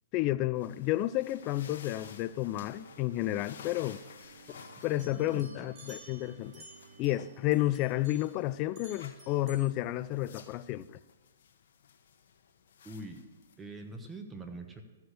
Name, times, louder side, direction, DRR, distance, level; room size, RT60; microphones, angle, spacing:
voice 1, 0.1-4.0 4.8-6.6 7.0-11.0, left 15 dB, 35° left, 0.3 m, -31 dB
sound 1, 0.6-14.2, left 7 dB, 65° left, 1.1 m, -55 dB
sound 2, 1.8-7.4, right 5 dB, 85° right, 0.7 m, -56 dB
sound 3, 4.2-7.3 7.5-8.4 8.8-9.6, right 1 dB, 30° right, 3.4 m, -54 dB
voice 2, 4.9-5.5 12.8-13.2 13.6-14.8, right 2 dB, 15° right, 1.1 m, -44 dB
13.5 x 4.8 x 6.5 m
hypercardioid pair, 135°, 0 cm